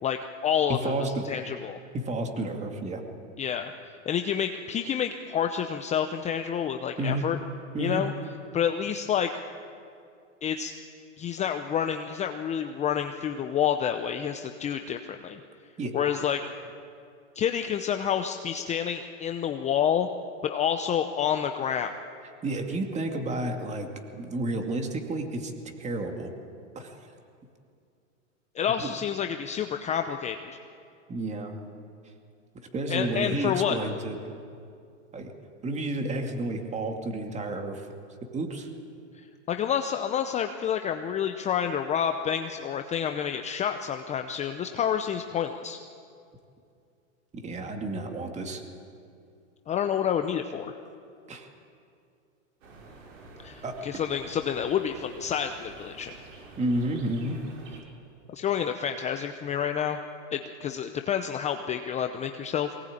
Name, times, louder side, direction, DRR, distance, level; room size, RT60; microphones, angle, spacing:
voice 1, 0.0-1.8 3.4-3.7 4.1-7.4 7.8-8.1 8.5-9.3 10.4-10.7 11.2-15.4 15.9-16.4 17.4-20.1 20.4-21.9 28.6-30.6 32.9-33.8 39.5-45.8 49.7-50.8 53.4-56.2 58.3-60.0 60.3-62.7, left 8 dB, 20° left, 6 dB, 0.7 m, -29 dB
voice 2, 0.7-1.2 1.9-3.0 7.0-7.2 7.7-8.0 15.8-15.9 22.4-25.5 25.8-26.3 26.8-27.1 31.1-31.6 32.7-34.2 35.1-35.3 35.6-37.9 38.3-38.7 47.3-48.6 51.3-51.5 53.6-53.8 56.6-57.4, right 2 dB, 15° right, 4 dB, 2.4 m, -31 dB
sound 1, 52.6-57.8, right 2 dB, 80° right, 6.0 m, -48 dB
22.5 x 19.0 x 8.7 m, 2.4 s
hypercardioid pair, 130°, 39 cm